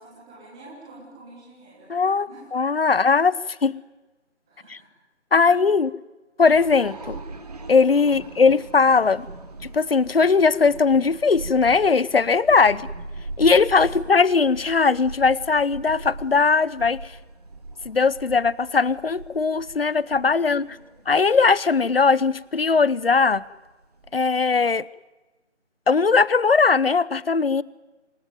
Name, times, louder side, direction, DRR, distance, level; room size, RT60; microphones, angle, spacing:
voice 1, 0.0-1.9 2.3-3.7 4.5-5.0 5.4-5.6 8.0-8.4 12.7-12.9 14.0-14.1 20.4-21.0, right 2 dB, 5° right, -6 dB, 1.4 m, -49 dB
voice 2, 1.9-3.4 3.6-3.8 4.7-4.8 5.3-5.9 6.4-7.2 7.7-9.3 9.6-12.8 13.4-17.1 17.8-20.7 21.1-23.4 24.1-24.8 25.9-27.6, left 4 dB, 55° left, 21 dB, 0.9 m, -19 dB
sound 1, 6.4-24.4, right 2 dB, 35° right, 2.8 m, -40 dB
27.5 x 19.5 x 9.2 m, 1.2 s
figure-of-eight pair, 170°, 36 cm